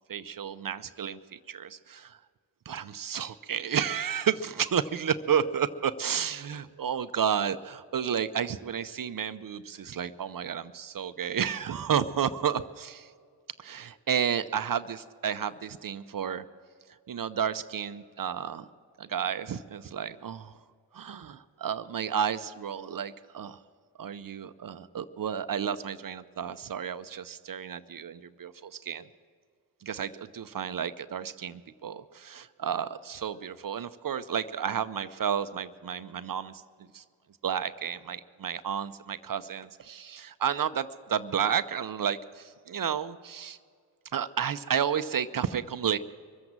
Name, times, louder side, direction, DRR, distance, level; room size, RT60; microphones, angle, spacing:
voice 1, 0.1-2.2 2.7-13.1 13.6-16.4 17.1-18.7 19.0-20.5 20.9-23.6 24.0-29.1 29.8-36.6 36.9-37.0 37.4-43.6 44.1-46.0, right 8 dB, 45° right, 13 dB, 0.7 m, -31 dB
23.5 x 7.8 x 7.3 m, 2.1 s
supercardioid pair, 45°, 48 cm